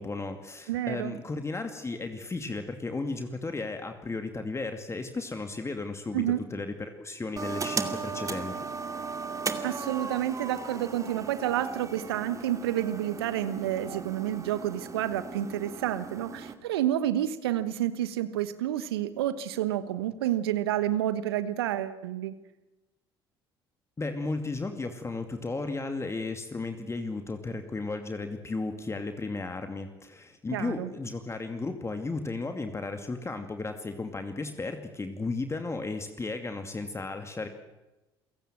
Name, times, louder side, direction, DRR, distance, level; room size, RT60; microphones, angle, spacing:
voice 1, 0.0-6.2 6.5-8.7 24.0-37.5, left 3 dB, 20° left, 6 dB, 2.4 m, -34 dB
voice 2, 0.7-1.2 6.1-6.4 9.6-22.3 30.5-30.9, right 12 dB, 75° right, 13 dB, 1.2 m, -29 dB
sound 1, 7.4-16.5, right 4 dB, 25° right, 2.4 m, -37 dB
28.5 x 17.5 x 7.7 m, 1.0 s
figure-of-eight pair, 55°, 13 cm